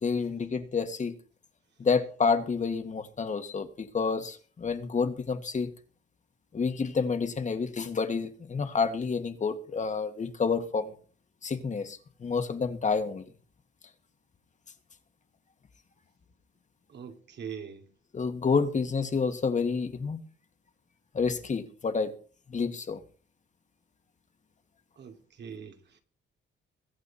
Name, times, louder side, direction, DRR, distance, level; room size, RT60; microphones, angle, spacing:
voice 1, 0.0-1.2 1.8-5.7 6.5-10.9 11.4-13.2 18.1-20.2 21.1-22.1 22.5-23.0, left 5 dB, 40° left, 2.1 m, -29 dB
voice 2, 16.9-17.8 25.0-25.8, right 7 dB, 60° right, 2.8 m, -42 dB
22.5 x 8.3 x 4.3 m
cardioid pair, 90°, 20 cm